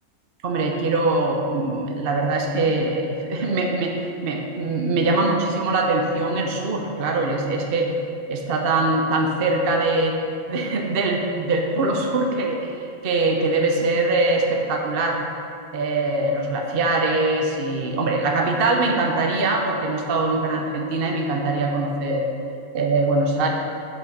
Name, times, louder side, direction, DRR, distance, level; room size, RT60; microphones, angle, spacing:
voice 1, 0.4-4.0 4.2-7.9 8.3-10.2 10.5-12.7 13.0-15.2 15.7-22.3 22.7-23.5, right 2 dB, 45° right, 1 dB, 1.0 m, -22 dB
10.0 x 5.9 x 6.4 m, 2.6 s
omnidirectional pair, 1.5 m